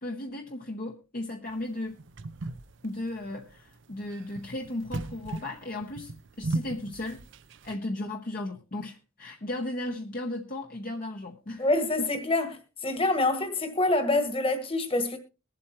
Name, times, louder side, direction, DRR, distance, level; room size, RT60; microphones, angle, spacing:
voice 1, 0.0-1.9 2.8-7.2 7.6-11.7 12.0-12.1, left 1 dB, 40° left, 0.9 m, -35 dB
sound 1, 1.5-7.8, right 2 dB, 60° right, 0.6 m, -37 dB
voice 2, 11.6-12.6 12.8-15.2, left 2 dB, 25° left, 1.4 m, -26 dB
22.0 x 7.8 x 2.9 m
head